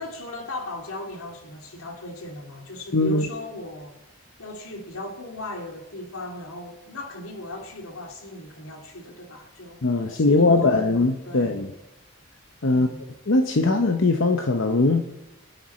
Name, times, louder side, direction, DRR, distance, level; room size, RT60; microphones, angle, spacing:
voice 1, 0.0-4.0 4.4-9.8 10.1-11.6 12.7-13.0, left 2 dB, 80° left, 2.2 m, -37 dB
voice 2, 2.9-3.3 9.8-11.7 12.6-12.9 13.3-15.1, left 3 dB, 60° left, 0.8 m, -20 dB
23.5 x 9.2 x 4.3 m
head